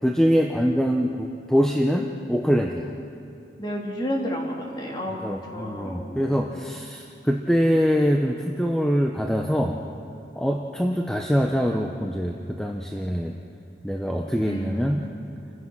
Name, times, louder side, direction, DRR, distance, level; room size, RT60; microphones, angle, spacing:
voice 1, 0.0-2.9 5.2-9.8 10.4-13.3 13.8-15.0, equal, 5° left, 2 dB, 0.8 m, -24 dB
voice 2, 3.6-6.3 14.4-15.1, equal, 25° left, -1 dB, 3.0 m, -31 dB
29.5 x 15.5 x 6.1 m, 2.7 s
head